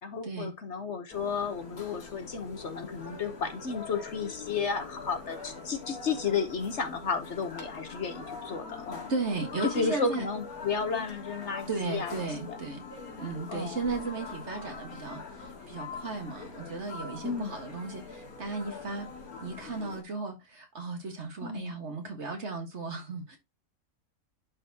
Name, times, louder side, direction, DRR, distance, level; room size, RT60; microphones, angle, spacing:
voice 1, 0.0-9.1 9.6-12.1 12.5-12.6 13.5-13.8 17.2-17.6 21.4-21.7, left 5 dB, 55° left, 1.2 m, -33 dB
sound 1, 1.1-20.0, left 4 dB, 80° left, 2.3 m, -43 dB
voice 2, 9.1-10.3 11.7-12.8 13.2-19.1 19.4-23.4, right 3 dB, 50° right, 1.8 m, -35 dB
11.0 x 4.2 x 2.8 m
omnidirectional pair, 1.5 m